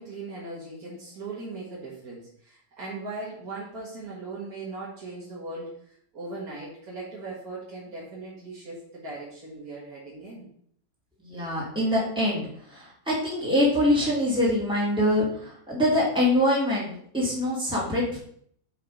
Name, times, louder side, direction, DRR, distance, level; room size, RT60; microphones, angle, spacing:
voice 1, 0.0-10.5, right 3 dB, 60° right, -7 dB, 2.5 m, -39 dB
voice 2, 11.2-16.9 17.1-18.2, left 1 dB, 5° right, -6 dB, 2.5 m, -24 dB
5.7 x 5.2 x 5.4 m, 0.63 s
omnidirectional pair, 1.7 m